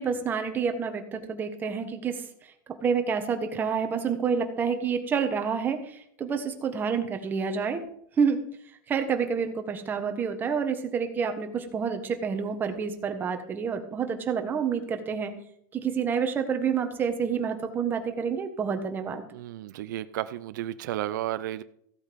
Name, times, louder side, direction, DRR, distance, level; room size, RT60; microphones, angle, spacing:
voice 1, 0.0-7.8 8.2-8.4 8.9-15.3 15.7-19.2, right 6 dB, 20° right, 6 dB, 1.4 m, -28 dB
voice 2, 19.3-21.6, right 13 dB, 80° right, 13 dB, 0.6 m, -33 dB
15.0 x 8.2 x 5.3 m, 0.69 s
supercardioid pair, 160°, 10 cm